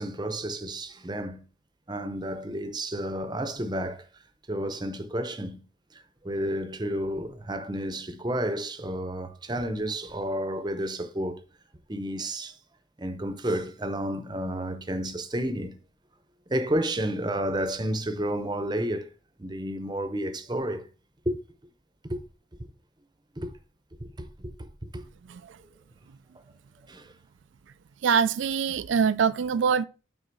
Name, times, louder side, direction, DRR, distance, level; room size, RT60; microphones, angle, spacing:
voice 1, 0.0-1.4 1.9-4.0 4.5-5.6 6.2-11.4 11.9-12.6 13.0-15.7 16.5-19.1 19.4-20.9 21.3-21.4 22.0-22.2 23.4-23.5 24.0-25.0 26.9-27.1, right 1 dB, 20° right, 0.7 m, -31 dB
voice 2, 28.0-29.8, right 6 dB, 80° right, 0.4 m, -23 dB
9.1 x 3.9 x 4.6 m
head